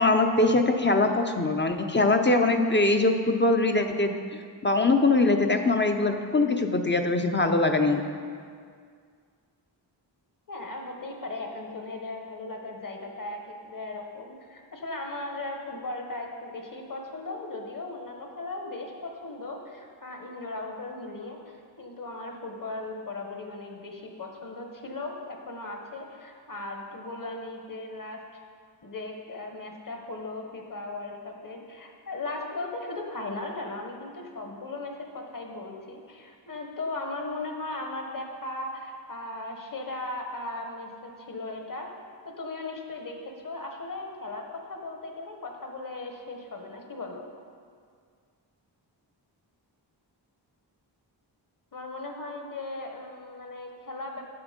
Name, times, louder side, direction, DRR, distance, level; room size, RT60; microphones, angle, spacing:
voice 1, 0.0-8.0, left 2 dB, 25° left, 5 dB, 0.6 m, -23 dB
voice 2, 10.5-28.2 28.8-41.9 42.2-47.2 51.7-54.3, left 2 dB, 45° left, 2 dB, 1.3 m, -37 dB
9.6 x 7.1 x 5.2 m, 2.1 s
wide cardioid pair, 105°, 45 cm